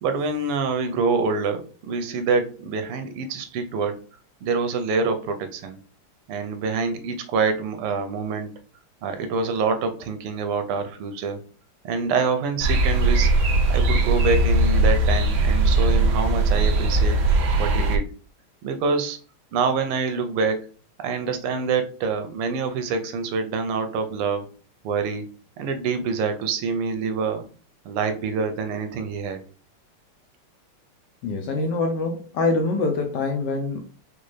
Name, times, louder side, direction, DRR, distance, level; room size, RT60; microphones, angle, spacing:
voice 1, 0.0-4.0 4.4-5.8 6.3-8.5 9.0-11.4 11.8-13.3 13.7-17.2 17.6-18.1 18.6-19.2 19.5-20.6 21.0-24.5 24.8-25.3 25.6-27.4 27.8-29.4, right 4 dB, 90° right, 7 dB, 1.6 m, -26 dB
sound 1, 12.6-18.0, right 2 dB, 65° right, 1.1 m, -19 dB
voice 2, 31.2-33.8, left 3 dB, 70° left, 3 dB, 1.0 m, -24 dB
5.2 x 2.3 x 3.1 m, 0.39 s
omnidirectional pair, 2.4 m